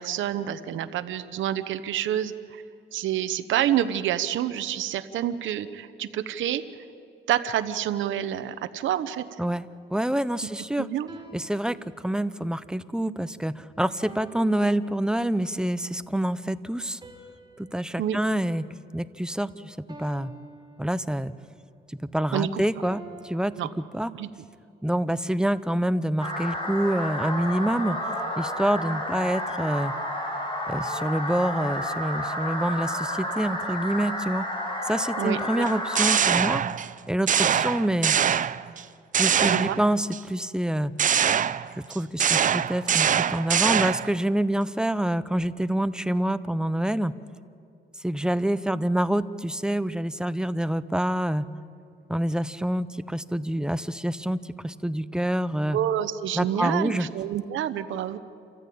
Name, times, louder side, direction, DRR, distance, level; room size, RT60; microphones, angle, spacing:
voice 1, 0.0-2.6 2.9-6.6 7.3-9.3 10.8-11.1 18.0-18.2 22.3-22.6 23.6-23.7 24.2-24.3 35.2-35.7 39.4-39.8 55.7-58.2, right 11 dB, 75° right, 11 dB, 1.0 m, -28 dB
voice 2, 9.4-10.9 11.3-17.0 17.6-18.7 18.9-20.3 20.8-21.3 22.0-24.1 24.8-28.0 28.4-29.9 30.7-34.5 34.8-36.6 37.1-38.2 39.1-40.9 41.8-47.1 48.0-51.4 52.1-55.8 56.4-57.1, right 1 dB, 5° right, 14 dB, 0.7 m, -27 dB
sound 1, 11.1-12.5 14.0-15.4 17.0-19.4 19.9-21.4 22.8-24.4, right 2 dB, 20° right, 4.4 m, -48 dB
sound 2, 26.2-36.2, left 1 dB, 25° left, 5.7 m, -31 dB
sound 3, 35.7-36.9 37.3-38.8 39.1-40.2 41.0-44.2, right 8 dB, 40° right, 0.6 m, -23 dB
28.0 x 14.5 x 8.6 m, 2.4 s
cardioid pair, 90°, 20 cm